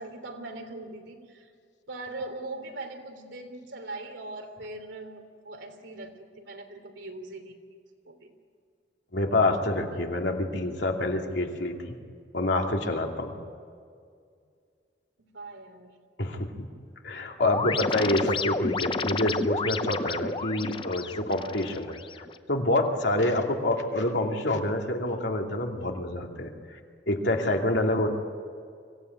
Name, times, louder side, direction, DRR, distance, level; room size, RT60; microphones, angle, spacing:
voice 1, 0.0-1.5 1.9-7.5 8.0-8.3 15.2-15.9 23.2-23.5, right 2 dB, 85° right, 5 dB, 3.2 m, -41 dB
voice 2, 9.1-12.0 12.3-13.3 16.2-16.7 17.0-22.0 22.5-26.8 27.1-28.1, left 1 dB, 75° left, 2 dB, 2.6 m, -27 dB
sound 1, 17.4-22.4, left 3 dB, 25° left, 0.6 m, -31 dB
25.0 x 16.5 x 9.5 m, 2.2 s
head